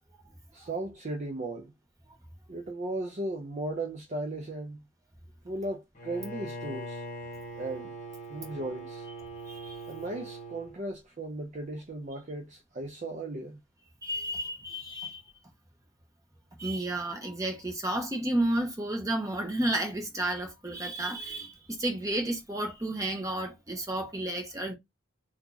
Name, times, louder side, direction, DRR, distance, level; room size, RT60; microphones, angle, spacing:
voice 1, 0.5-1.7 2.5-4.9 5.4-7.0 7.5-8.0 8.3-9.1 9.9-13.6, right 2 dB, 35° right, 0.5 m, -36 dB
Bowed string instrument, 6.0-10.8, right 1 dB, 35° left, 1.0 m, -41 dB
voice 2, 9.4-9.8 14.0-15.2 16.6-24.7, right 1 dB, 15° right, 0.8 m, -32 dB
2.9 x 2.3 x 3.8 m
head